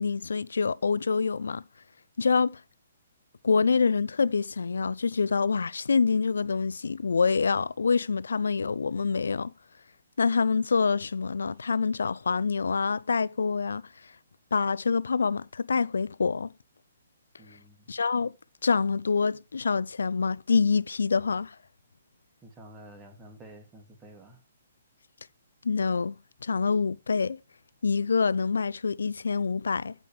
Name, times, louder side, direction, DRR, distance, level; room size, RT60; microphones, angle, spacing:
voice 1, 0.0-1.6 2.2-2.6 3.4-9.5 10.2-13.8 14.5-16.5 17.9-18.3 18.6-21.6 25.6-27.4 27.8-29.9, left 5 dB, 85° left, 0.4 m, -26 dB
voice 2, 17.4-18.0 22.4-24.4, right 1 dB, 15° right, 2.6 m, -50 dB
14.0 x 5.2 x 3.3 m
hypercardioid pair, 145°, 0 cm